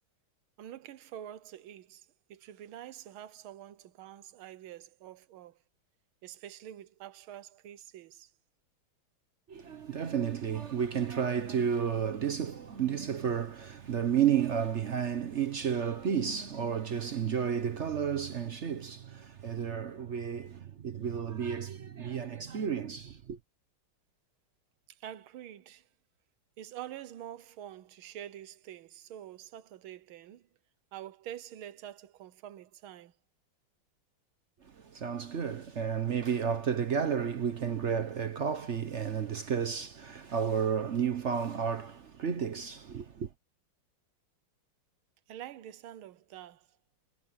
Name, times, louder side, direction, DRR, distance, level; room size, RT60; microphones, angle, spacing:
voice 1, 0.6-5.6 6.2-8.3 24.9-25.9 26.6-30.5 30.9-33.1 45.3-46.7, right 11 dB, 90° right, 1.7 m, -46 dB
voice 2, 9.5-23.4 34.6-43.3, right 7 dB, 55° right, 0.8 m, -32 dB
omnidirectional pair, 2.2 m